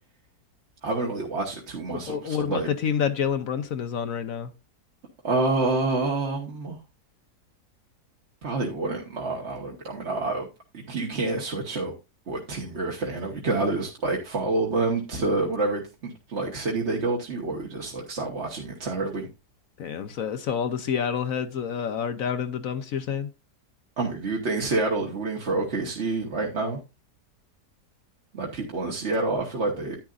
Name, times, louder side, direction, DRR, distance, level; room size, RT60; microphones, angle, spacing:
voice 1, 0.8-2.7 5.2-6.8 8.4-10.5 10.7-11.9 12.3-19.3 24.0-26.8 28.3-30.0, right 3 dB, 45° right, 1.5 m, -28 dB
voice 2, 2.1-4.5 19.8-23.3, left 7 dB, 60° left, 1.1 m, -28 dB
10.5 x 9.8 x 2.4 m
omnidirectional pair, 1.7 m